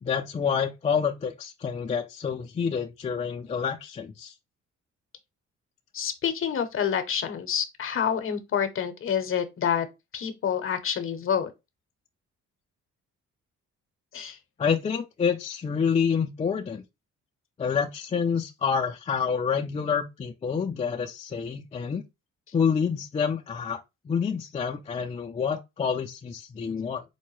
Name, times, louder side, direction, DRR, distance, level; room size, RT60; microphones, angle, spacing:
voice 1, 0.0-4.3 14.6-16.8 17.6-22.0 22.5-23.8 24.1-27.0, left 6 dB, 25° left, 0.4 m, -28 dB
voice 2, 5.9-9.9 10.1-11.5 14.1-14.4, left 8 dB, 45° left, 0.7 m, -28 dB
4.4 x 2.1 x 3.1 m
cardioid pair, 90°, 30 cm